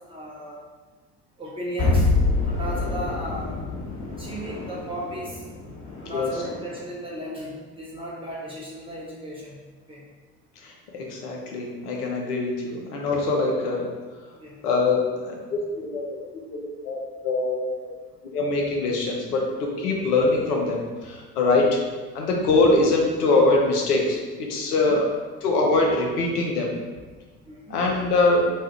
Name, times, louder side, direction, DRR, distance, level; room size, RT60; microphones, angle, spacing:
voice 1, 0.1-0.6 1.4-2.1 2.5-3.6 4.2-5.7 6.0-9.6 9.9-10.0 14.4-14.5 24.7-25.0 27.4-27.8, equal, 10° right, -6 dB, 0.8 m, -35 dB
sound 1, 1.8-6.9, left 3 dB, 35° left, 1.4 m, -27 dB
voice 2, 10.6-13.9 14.6-16.0 16.5-16.6 16.8-17.9 18.3-21.7 22.1-25.0 25.4-26.8 27.7-28.5, left 3 dB, 70° left, -1 dB, 0.7 m, -23 dB
2.7 x 2.3 x 3.3 m, 1.4 s
figure-of-eight pair, 65°, 48 cm